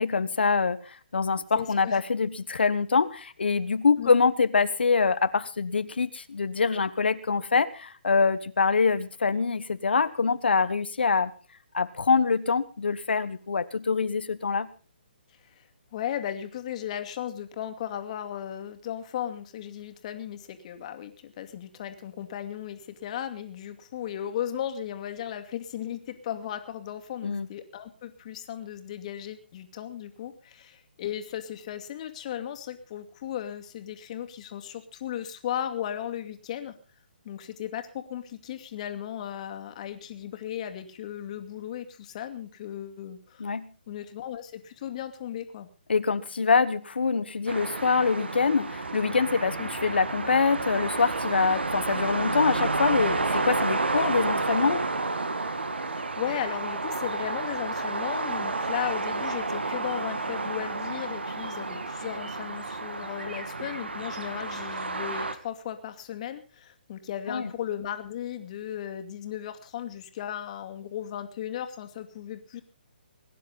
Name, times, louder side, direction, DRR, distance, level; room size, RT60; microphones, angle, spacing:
voice 1, 0.0-11.3 11.7-14.7 27.2-27.5 43.4-43.7 45.9-54.8 67.3-67.5, left 5 dB, 75° left, 12 dB, 1.1 m, -25 dB
voice 2, 1.6-2.0 4.0-4.1 15.4-36.7 37.2-43.5 43.9-45.7 49.6-49.7 55.9-72.6, left 10 dB, 40° left, 8 dB, 2.3 m, -36 dB
sound 1, 47.5-65.3, right 3 dB, 85° right, 2.2 m, -30 dB
21.0 x 10.0 x 5.5 m, 0.37 s
figure-of-eight pair, 145°, 6 cm